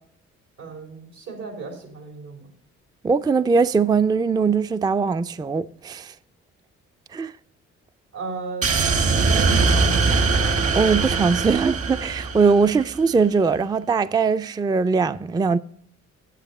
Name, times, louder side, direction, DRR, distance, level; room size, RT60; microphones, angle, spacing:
voice 1, 0.6-2.5 8.1-8.7 9.2-10.3, right 3 dB, 80° right, 3.3 m, -35 dB
voice 2, 3.0-6.1 7.1-7.3 10.7-15.6, right 5 dB, 15° right, 0.4 m, -21 dB
sound 1, 8.6-13.0, right 4 dB, 50° right, 1.1 m, -21 dB
9.2 x 7.8 x 4.1 m
supercardioid pair, 55°, 30 cm